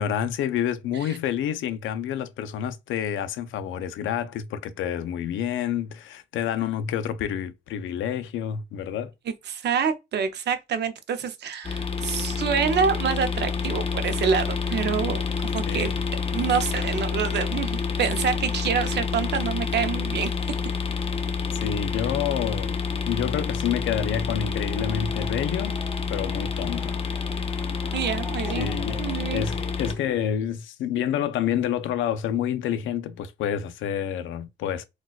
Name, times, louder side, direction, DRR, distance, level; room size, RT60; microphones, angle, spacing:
voice 1, 0.0-9.1 15.7-16.0 21.5-22.8 23.1-25.8 26.1-27.0 28.6-29.0 29.3-34.9, left 9 dB, 80° left, 0.5 m, -28 dB
voice 2, 9.5-15.9 16.3-20.3 27.9-28.7 29.0-29.5, right 6 dB, 60° right, 0.6 m, -27 dB
sound 1, 11.6-29.9, left 5 dB, 30° left, 0.6 m, -28 dB
sound 2, 24.0-30.3, equal, 5° left, 1.9 m, -44 dB
3.9 x 2.2 x 2.3 m
cardioid pair, 90°, 20 cm